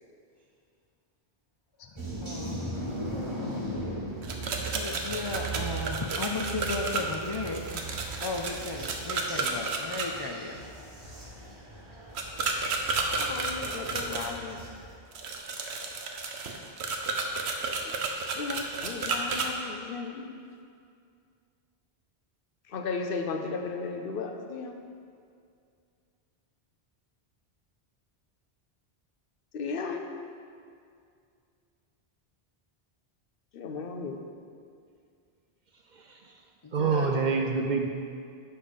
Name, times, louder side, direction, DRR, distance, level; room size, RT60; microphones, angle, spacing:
voice 1, 1.9-2.6 4.5-10.7 11.0-11.1 36.6-37.1, left 3 dB, 45° left, 0 dB, 0.3 m, -36 dB
sound 1, 2.0-15.0, right 2 dB, 30° right, 1.2 m, -39 dB
sound 2, 4.2-10.1 12.2-14.3 15.1-19.5, right 4 dB, 85° right, 1.0 m, -32 dB
voice 2, 13.1-14.6 18.3-20.6 22.7-24.8 29.5-30.1 33.5-34.2, left 4 dB, 65° left, 5 dB, 0.8 m, -35 dB
voice 3, 35.9-36.3 36.7-37.9, right 4 dB, 55° right, 3 dB, 0.5 m, -27 dB
6.9 x 5.5 x 5.1 m, 2.3 s
omnidirectional pair, 1.1 m